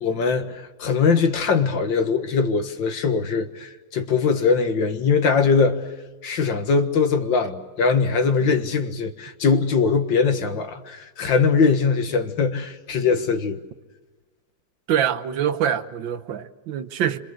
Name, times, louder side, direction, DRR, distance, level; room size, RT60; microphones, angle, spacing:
voice 1, 0.0-5.9 6.2-13.6, left 5 dB, 70° left, 2.1 m, -21 dB
voice 2, 14.9-17.2, right 9 dB, 70° right, 1.6 m, -25 dB
27.0 x 25.5 x 6.5 m
omnidirectional pair, 2.2 m